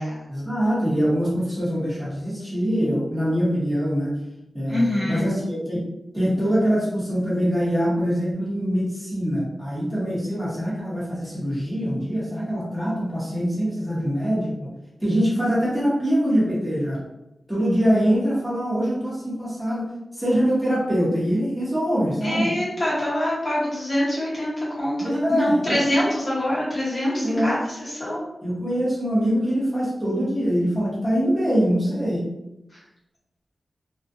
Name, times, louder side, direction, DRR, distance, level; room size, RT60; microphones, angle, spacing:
voice 1, 0.3-4.1 4.5-5.8 6.1-14.5 15.0-17.0 17.5-22.5 25.0-25.7 27.2-27.6 28.4-32.2, equal, ahead, -9 dB, 0.9 m, -23 dB
voice 2, 4.7-5.3 22.2-28.2, left 1 dB, 35° left, -8 dB, 0.8 m, -24 dB
2.4 x 2.2 x 2.5 m, 0.90 s
wide cardioid pair, 130°, 0 cm